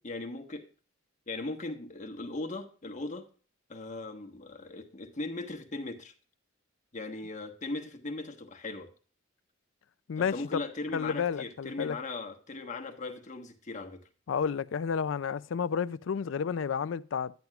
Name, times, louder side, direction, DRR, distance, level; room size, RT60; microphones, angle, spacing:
voice 1, 0.0-0.6 1.3-3.3 3.7-6.1 6.9-8.9 10.2-14.0, left 2 dB, 40° left, 1.3 m, -38 dB
voice 2, 10.1-10.6 10.9-12.0 14.3-17.3, left 6 dB, 80° left, 0.4 m, -31 dB
10.5 x 9.3 x 2.3 m
head